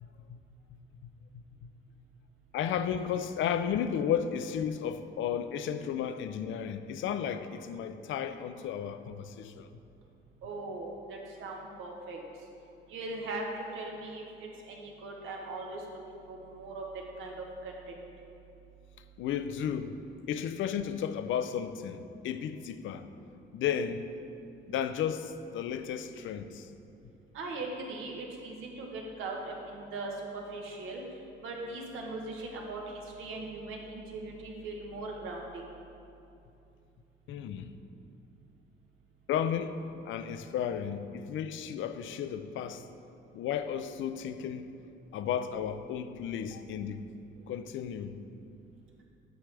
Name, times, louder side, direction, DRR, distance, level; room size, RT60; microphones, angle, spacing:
voice 1, 0.0-0.4 1.0-1.7 2.5-9.7 19.2-20.0 20.3-23.1 23.5-24.1 24.7-26.7 37.3-37.7 39.3-39.8 40.0-42.8 43.3-44.7 45.1-47.0 47.5-48.2, left 8 dB, 75° left, 0.4 m, -33 dB
voice 2, 10.4-12.2 12.9-13.4 13.7-15.8 16.3-18.1 27.3-31.0 31.4-32.8 33.2-35.7, right 2 dB, 85° right, 1.1 m, -40 dB
7.8 x 6.1 x 3.3 m
cardioid pair, 90°, 20 cm